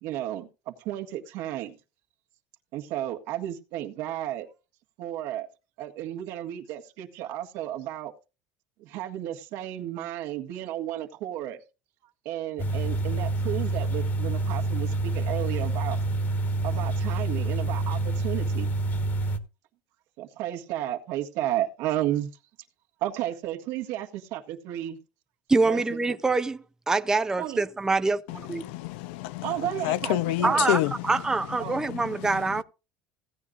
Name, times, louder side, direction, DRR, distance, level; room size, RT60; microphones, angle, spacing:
voice 1, 0.0-1.7 2.7-4.5 5.0-5.5 5.8-8.1 8.8-11.6 12.2-16.0 16.6-18.7 20.2-22.3 23.0-25.0 25.7-26.2 27.4-27.6 29.4-30.7 31.6-31.9, right 12 dB, 70° right, 1.7 m, -33 dB
sound 1, 12.6-19.4, right 2 dB, 35° left, 1.5 m, -27 dB
voice 2, 25.5-26.6 26.9-28.6 30.4-32.6, right 3 dB, 10° right, 0.5 m, -25 dB
voice 3, 28.3-31.2 31.6-32.6, left 14 dB, 85° left, 0.6 m, -30 dB
16.5 x 9.7 x 2.5 m
cardioid pair, 135°, 6 cm